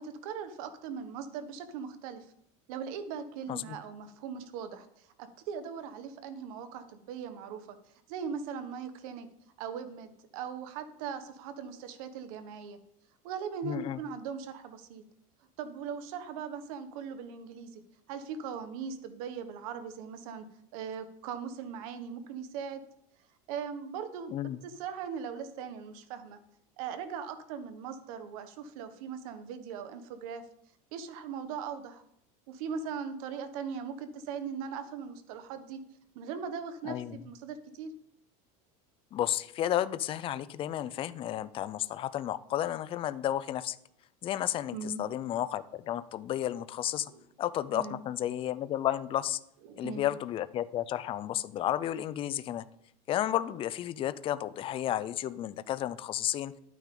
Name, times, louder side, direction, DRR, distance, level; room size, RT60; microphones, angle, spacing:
voice 1, 0.0-2.2 2.7-7.8 8.1-9.3 9.6-12.8 13.2-15.0 15.6-17.8 18.1-20.5 20.7-22.8 23.5-26.4 26.8-30.4 30.9-32.0 32.5-35.8 36.1-37.9 44.7-45.0 47.1-47.2 47.7-48.0 49.7-50.0, right 6 dB, 75° right, 9 dB, 1.3 m, -39 dB
voice 2, 13.6-14.0 24.3-24.6 36.8-37.3 39.1-43.8 44.2-47.1 47.4-49.4 49.8-52.6 53.1-56.5, left 12 dB, 30° left, 15 dB, 0.5 m, -32 dB
11.5 x 9.1 x 3.8 m, 0.72 s
supercardioid pair, 145°, 18 cm